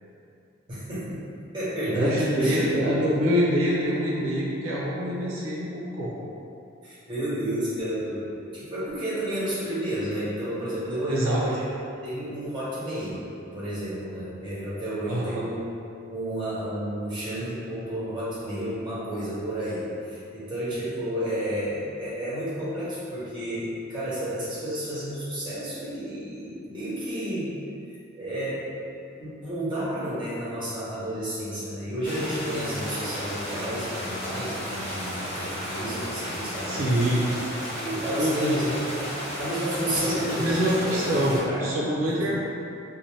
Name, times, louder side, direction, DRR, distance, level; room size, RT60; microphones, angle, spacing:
voice 1, 0.7-1.3 1.5-3.1 6.8-11.7 12.0-13.2 13.5-15.6 16.1-27.5 28.1-28.7 29.2-36.9 37.8-41.7 42.0-42.4, right 1 dB, 25° right, -10 dB, 1.0 m, -31 dB
voice 2, 1.9-6.2 11.1-11.4 15.1-15.5 36.7-37.3 38.1-38.9 40.0-42.4, equal, 90° right, -5 dB, 0.5 m, -25 dB
sound 1, 32.0-41.4, equal, 30° left, 0.8 m, -33 dB
2.6 x 2.1 x 3.2 m, 2.6 s
head